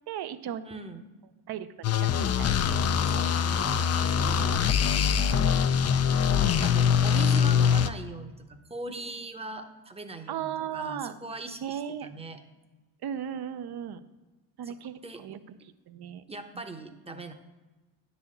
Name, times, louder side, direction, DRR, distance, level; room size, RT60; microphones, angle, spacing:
voice 1, 0.1-0.8 1.5-2.6 10.3-11.2 11.6-12.1 13.0-14.0 14.6-15.6 15.9-16.2 16.5-16.6, right 9 dB, 55° right, 12 dB, 0.7 m, -36 dB
voice 2, 0.6-1.0 3.1-5.5 6.6-12.4 14.7-14.8 15.0-15.2 16.3-17.3, right 2 dB, 15° right, 6 dB, 0.8 m, -41 dB
sound 1, 1.8-7.9, left 7 dB, 35° left, 0.4 m, -23 dB
9.9 x 4.2 x 7.5 m, 1.2 s
cardioid pair, 85°, 47 cm